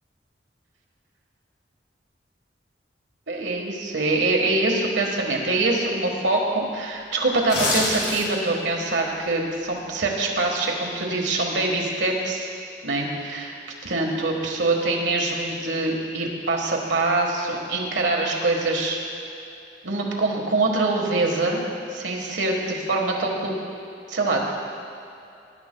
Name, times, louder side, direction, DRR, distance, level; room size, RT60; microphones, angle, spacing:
voice 1, 3.3-12.5 12.8-13.5 13.8-19.0 19.8-21.6 21.9-23.5 24.1-24.4, right 2 dB, 85° right, 0 dB, 1.4 m, -24 dB
sound 1, 7.4-8.5 8.9-9.1, left 2 dB, 70° left, 2.2 m, -25 dB
19.5 x 11.0 x 2.2 m, 2.6 s
head